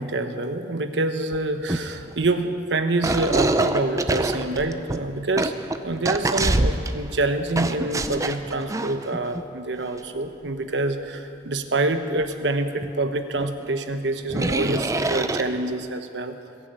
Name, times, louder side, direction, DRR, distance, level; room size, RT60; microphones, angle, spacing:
voice 1, 0.0-5.5 5.8-16.4, right 2 dB, 80° right, 8 dB, 1.1 m, -26 dB
sound 1, 1.3-1.4 1.7-2.4 3.0-7.0 7.5-9.4 9.8-10.0 12.3-12.4 12.8-12.9 13.4-13.5 14.3-15.9, right 2 dB, 20° right, 0.5 m, -25 dB
21.0 x 7.4 x 9.0 m, 2.5 s
head